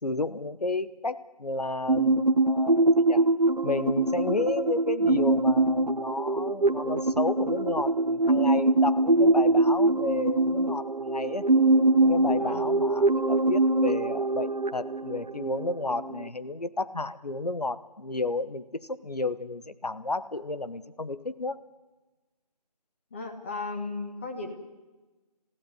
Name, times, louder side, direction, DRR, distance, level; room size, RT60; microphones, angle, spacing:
voice 1, 0.0-3.2 3.6-11.4 12.0-21.6, left 2 dB, 70° left, 13 dB, 1.2 m, -32 dB
sound 1, 1.9-16.3, right 2 dB, 80° right, 1.1 m, -23 dB
voice 2, 23.1-24.5, left 3 dB, 15° left, 2 dB, 1.7 m, -35 dB
20.0 x 15.5 x 9.5 m, 1.2 s
figure-of-eight pair, 165°, 21 cm